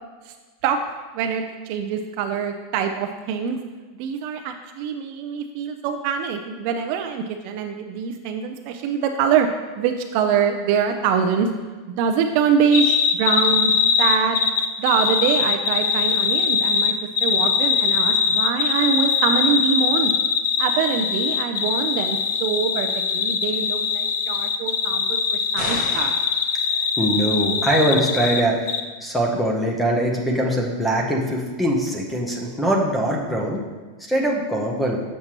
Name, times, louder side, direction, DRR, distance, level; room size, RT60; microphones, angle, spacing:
voice 1, 1.1-3.6 4.0-9.5 9.8-11.5 12.0-13.7 14.0-14.4 14.8-16.9 17.2-20.1 20.6-26.1, right 7 dB, 45° right, 5 dB, 0.4 m, -24 dB
sound 1, 12.7-28.4 28.7-28.8, left 6 dB, 75° left, 0.5 m, -22 dB
sound 2, 25.6-26.3, left 1 dB, 45° left, 2.0 m, -30 dB
voice 2, 27.0-28.7 29.0-33.6 34.1-35.0, right 1 dB, 5° left, 0 dB, 0.8 m, -22 dB
7.2 x 6.5 x 2.9 m, 1.4 s
supercardioid pair, 170°, 0 cm